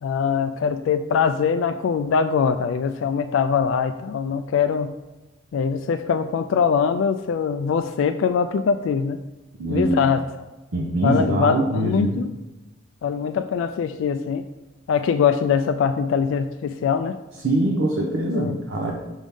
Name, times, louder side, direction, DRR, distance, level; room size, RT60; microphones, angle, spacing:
voice 1, 0.0-5.0 5.5-9.2 9.7-10.2 11.0-12.3 13.0-14.5 14.9-17.2 18.3-18.6, left 6 dB, 80° left, 8 dB, 0.3 m, -22 dB
voice 2, 9.6-10.0 10.7-12.2 17.4-18.9, right 1 dB, 90° right, -1 dB, 0.8 m, -23 dB
6.2 x 3.5 x 5.4 m, 1.1 s
head